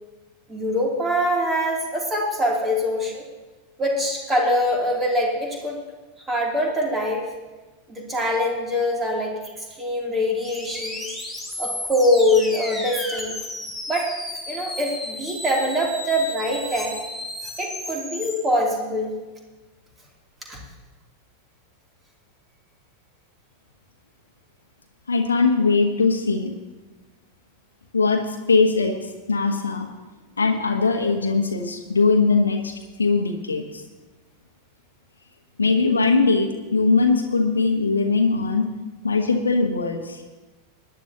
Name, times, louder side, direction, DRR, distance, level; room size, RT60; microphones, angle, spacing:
voice 1, 0.5-3.2 3.8-5.8 6.3-7.3 7.9-11.2 11.6-13.4 13.9-14.1 14.5-17.0 17.6-19.2 20.5-20.6, left 1 dB, 15° right, -1 dB, 2.9 m, -23 dB
sound 1, 10.4-18.4, left 1 dB, ahead, 2.3 m, -34 dB
voice 2, 25.1-26.5 27.9-29.0 29.3-29.9 30.4-32.7 33.0-33.8 35.6-38.7 39.0-40.2, left 4 dB, 75° left, 4 dB, 1.2 m, -20 dB
20.5 x 10.5 x 2.9 m, 1.2 s
figure-of-eight pair, 90°, 0 cm